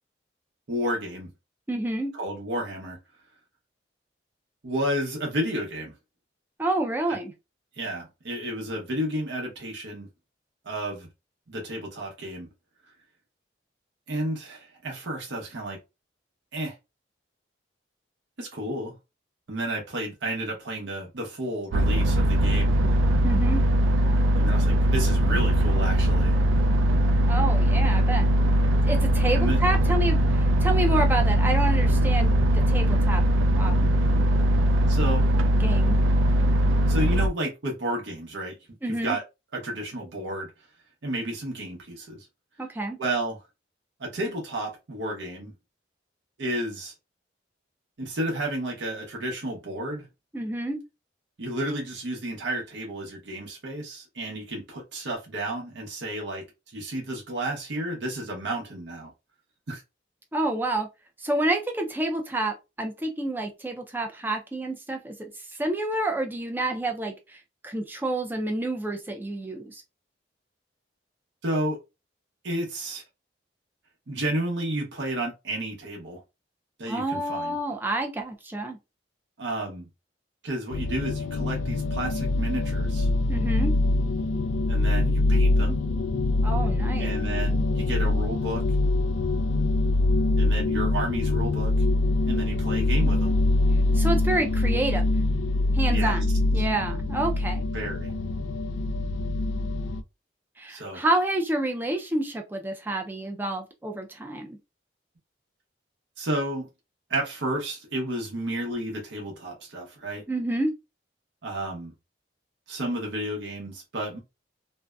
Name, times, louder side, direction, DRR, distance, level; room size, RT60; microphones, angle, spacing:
voice 1, 0.7-1.3 2.1-3.0 4.6-5.9 7.1-7.2 7.7-10.1 10.6-11.1 11.5-12.5 14.1-15.8 16.5-16.7 18.4-18.9 19.5-23.0 24.3-26.4 29.3-29.6 34.9-35.2 36.9-38.5 38.9-39.2 39.5-40.5 41.0-42.3 43.0-43.4 44.0-45.5 46.4-46.9 48.0-50.1 51.4-56.5 56.7-59.1 59.7-59.8 71.4-71.8 72.4-73.0 74.1-76.2 76.8-77.6 79.4-79.9 80.4-83.1 84.7-85.8 87.0-88.6 90.4-91.7 92.2-93.4 95.9-96.2 96.6-96.7 97.7-98.1 100.7-101.0 106.2-106.7 107.1-110.2 111.4-111.9 112.7-114.2, right 1 dB, 75° right, 0.7 m, -31 dB
voice 2, 1.7-2.1 6.6-7.3 23.2-23.6 27.3-28.3 28.8-32.4 32.7-33.2 33.6-33.9 35.6-36.0 38.8-39.2 42.6-43.0 50.3-50.8 60.3-60.9 61.2-65.3 65.6-67.4 67.6-69.8 76.9-78.8 83.3-83.7 86.4-87.1 93.9-95.0 95.7-97.6 100.6-104.6 110.3-110.7, right 2 dB, 10° right, 0.4 m, -28 dB
sound 1, 21.7-37.3, right 1 dB, 90° right, 0.3 m, -21 dB
sound 2, 80.7-100.0, left 2 dB, 85° left, 0.3 m, -24 dB
2.6 x 2.1 x 2.3 m
head